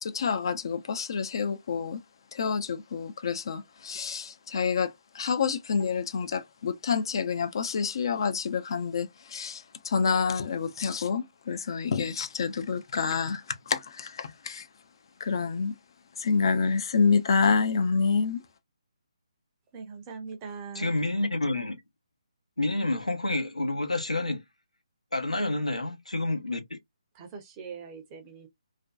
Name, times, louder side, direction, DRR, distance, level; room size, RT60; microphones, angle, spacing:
voice 1, 0.0-2.0 2.3-14.7 15.2-15.8 16.2-18.4, left 5 dB, 45° left, 0.4 m, -28 dB
voice 2, 19.7-20.9 27.1-28.5, right 5 dB, 20° right, 0.6 m, -41 dB
voice 3, 20.7-21.8 22.6-24.4 25.1-26.8, left 2 dB, 85° left, 0.7 m, -29 dB
2.5 x 2.1 x 2.3 m
figure-of-eight pair, 145°, 3 cm